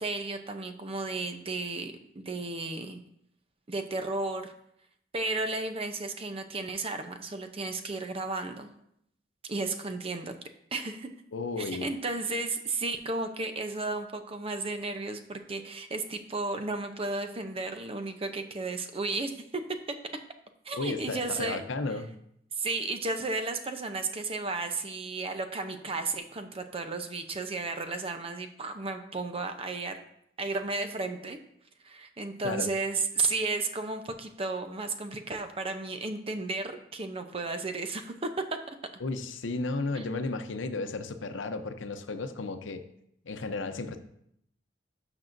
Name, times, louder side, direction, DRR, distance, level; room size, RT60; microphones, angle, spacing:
voice 1, 0.0-3.0 3.7-4.5 5.1-8.7 9.5-10.3 10.7-11.1 11.6-19.6 20.6-21.6 22.6-30.0 30.4-31.4 31.8-38.8 39.9-40.1, right 3 dB, 30° right, 7 dB, 0.7 m, -33 dB
voice 2, 11.3-11.9 20.7-22.1 32.4-32.7 39.0-42.8 43.2-44.0, left 3 dB, 90° left, 8 dB, 0.7 m, -33 dB
12.0 x 6.1 x 2.6 m, 0.73 s
head